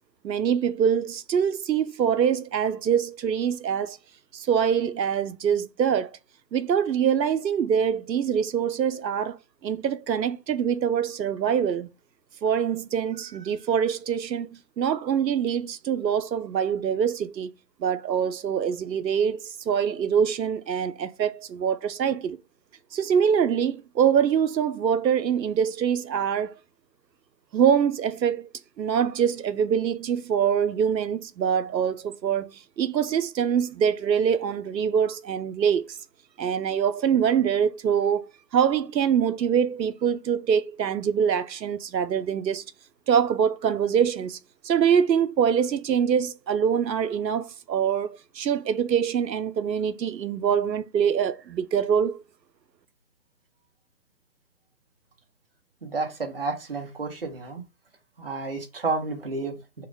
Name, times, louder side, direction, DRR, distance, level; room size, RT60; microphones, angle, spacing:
voice 1, 0.2-4.0 4.3-6.1 6.5-9.4 9.6-11.9 12.4-14.5 14.8-17.5 17.8-22.4 22.9-26.5 27.5-28.5 28.8-32.5 32.8-36.0 36.4-38.2 38.5-42.6 43.1-44.4 44.6-52.2, right 8 dB, 80° right, 0.7 m, -24 dB
voice 2, 55.8-57.6 58.2-59.9, right 3 dB, 35° right, 0.8 m, -31 dB
4.7 x 2.3 x 4.7 m
hypercardioid pair, 170°, 50 cm